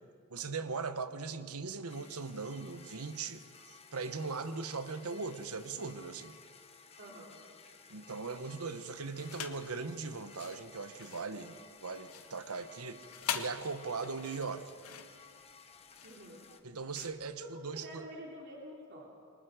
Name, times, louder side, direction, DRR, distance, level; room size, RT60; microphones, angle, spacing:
voice 1, 0.3-6.4 7.9-13.0 13.3-14.6 16.6-18.0, right 4 dB, 80° right, 10 dB, 1.2 m, -39 dB
sound 1, 1.9-16.6, left 5 dB, 30° left, 1.3 m, -56 dB
voice 2, 7.0-7.3 16.0-16.5 17.4-19.1, equal, 55° right, -3 dB, 3.2 m, -48 dB
sound 2, 9.2-9.7 10.2-18.0, left 8 dB, 80° left, 1.6 m, -44 dB
28.0 x 24.0 x 5.1 m, 2.1 s
head